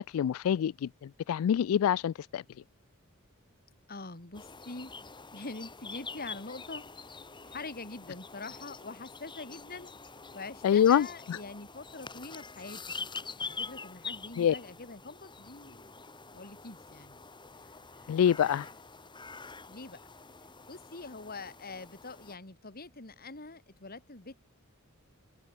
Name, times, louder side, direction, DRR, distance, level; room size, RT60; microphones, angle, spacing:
voice 1, 0.0-2.4 10.6-11.4 14.4-14.5 18.1-18.7, left 9 dB, 70° left, 0.3 m, -26 dB
voice 2, 3.9-4.9 5.3-6.9 7.5-10.0 10.3-15.8 16.3-17.2 18.4-18.7 19.7-20.0 20.7-24.4, left 3 dB, 45° left, 2.7 m, -44 dB
sound 1, 4.3-22.3, left 4 dB, 20° left, 3.2 m, -45 dB
head